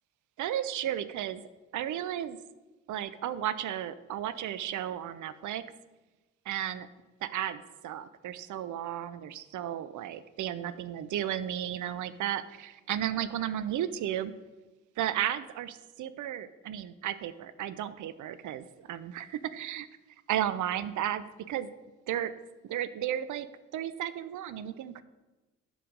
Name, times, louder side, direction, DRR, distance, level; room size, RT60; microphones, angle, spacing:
voice 1, 0.4-1.4 1.7-2.4 2.9-5.6 6.5-6.9 7.2-14.3 15.0-19.9 20.3-21.7 22.1-22.3 22.6-23.5 23.7-25.0, right 11 dB, 55° right, 14 dB, 0.7 m, -34 dB
11.5 x 4.7 x 5.2 m, 1.1 s
hypercardioid pair, 45°, 36 cm